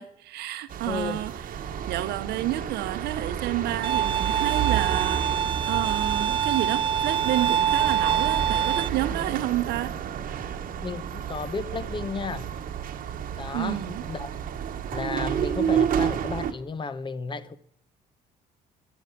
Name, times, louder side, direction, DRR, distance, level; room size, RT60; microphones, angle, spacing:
voice 1, 0.0-1.4 1.9-9.9 13.5-14.1, right 14 dB, 75° right, 0.8 m, -30 dB
sound 1, 0.7-16.5, right 8 dB, 55° right, 1.1 m, -31 dB
voice 2, 0.9-1.3 10.8-12.5 13.4-14.3 14.9-17.6, left 4 dB, 30° left, 0.8 m, -33 dB
Bowed string instrument, 3.8-8.9, right 9 dB, 30° right, 0.4 m, -25 dB
12.5 x 6.3 x 9.4 m
cardioid pair, 110°, 17 cm